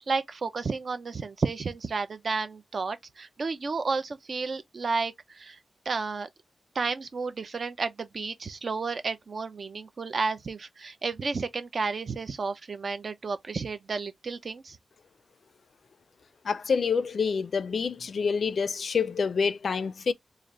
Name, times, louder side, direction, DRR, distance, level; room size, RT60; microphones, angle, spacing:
voice 1, 0.1-5.6 5.9-6.3 6.7-14.8, right 4 dB, 50° right, 0.6 m, -32 dB
voice 2, 16.4-20.1, left 5 dB, 65° left, 0.4 m, -27 dB
3.3 x 2.4 x 3.7 m
wide cardioid pair, 140°, 0 cm